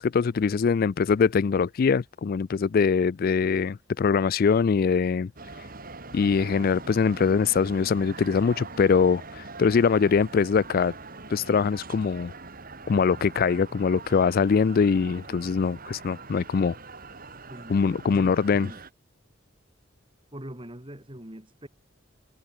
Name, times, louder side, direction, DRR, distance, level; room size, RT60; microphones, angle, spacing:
voice 1, 0.0-5.3 6.1-10.9 11.3-12.3 12.9-16.8 17.7-18.7, left 5 dB, 45° left, 0.4 m, -23 dB
sound 1, 5.4-18.9, right 3 dB, 45° right, 4.9 m, -43 dB
voice 2, 18.1-18.8 20.3-21.7, right 1 dB, 25° right, 3.4 m, -42 dB
head